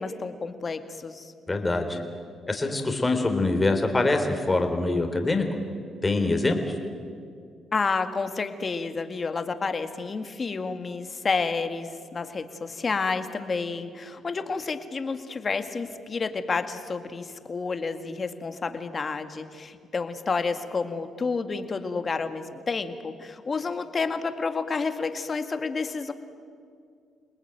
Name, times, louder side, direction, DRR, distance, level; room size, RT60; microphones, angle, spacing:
voice 1, 0.0-1.3 7.7-26.1, left 4 dB, 35° left, 8 dB, 2.0 m, -30 dB
voice 2, 1.5-2.0 2.5-5.4 6.0-6.7, left 2 dB, 20° left, 5 dB, 3.7 m, -24 dB
28.5 x 19.5 x 9.2 m, 2.2 s
cardioid pair, 90°, 0 cm